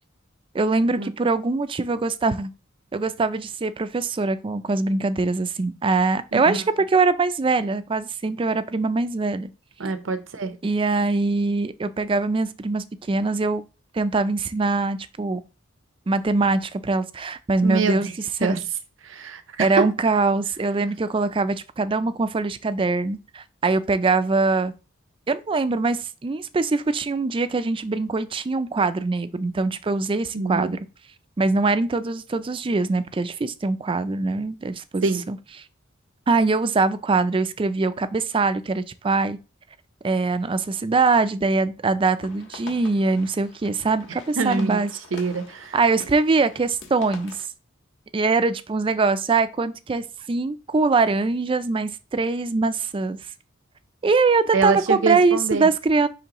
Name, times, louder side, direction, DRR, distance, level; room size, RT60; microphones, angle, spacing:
voice 1, 0.5-2.5 2.9-9.5 10.6-13.6 13.9-15.4 16.1-18.1 18.4-18.6 19.6-24.7 25.3-30.8 31.4-35.4 36.3-39.4 40.0-44.9 45.7-47.5 48.1-53.2 54.0-56.1, right 3 dB, 25° right, 0.4 m, -23 dB
voice 2, 6.3-6.6 9.8-10.6 17.6-18.1 18.4-18.6 19.0-19.9 30.3-30.8 35.0-35.2 44.4-44.8 45.1-45.8 54.5-55.7, right 4 dB, 75° right, 0.7 m, -25 dB
sound 1, 42.2-47.5, left 3 dB, 65° left, 1.4 m, -44 dB
9.9 x 3.3 x 2.9 m
head